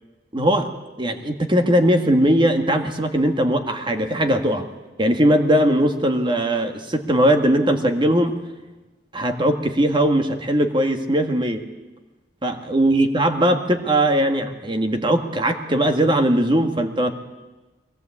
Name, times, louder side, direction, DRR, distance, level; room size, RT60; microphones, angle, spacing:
voice 1, 0.3-0.7 1.0-4.7 5.0-8.4 9.1-11.6 12.4-17.1, right 1 dB, 30° right, 6 dB, 1.8 m, -19 dB
22.0 x 17.5 x 8.6 m, 1.2 s
head